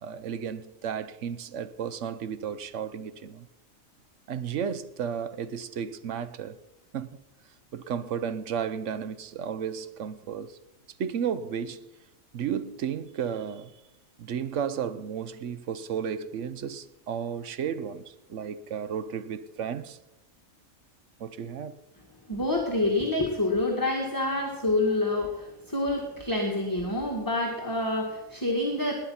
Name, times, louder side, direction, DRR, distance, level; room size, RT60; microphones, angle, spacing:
voice 1, 0.0-3.5 4.3-6.6 6.9-7.1 7.7-10.6 11.0-11.9 12.3-13.7 14.2-20.0 21.2-21.8, right 8 dB, 65° right, 1.0 m, -33 dB
voice 2, 22.3-28.9, left 2 dB, 15° left, 1.8 m, -27 dB
20.0 x 9.4 x 5.6 m
omnidirectional pair, 1.4 m